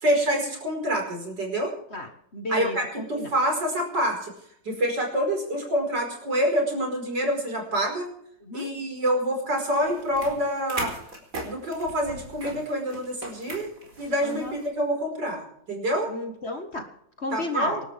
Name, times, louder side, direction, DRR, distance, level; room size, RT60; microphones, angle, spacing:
voice 1, 0.0-1.7 2.5-4.3 4.7-8.1 8.5-10.9 11.4-13.7 14.0-16.1 17.3-17.8, equal, 70° right, 2 dB, 5.7 m, -26 dB
voice 2, 1.9-3.3 8.4-8.7 14.2-14.6 16.1-16.9 17.2-17.8, left 1 dB, 35° left, 5 dB, 1.8 m, -34 dB
sound 1, 9.8-14.7, right 1 dB, 45° right, 5.0 m, -38 dB
26.5 x 12.0 x 3.6 m, 0.69 s
omnidirectional pair, 2.0 m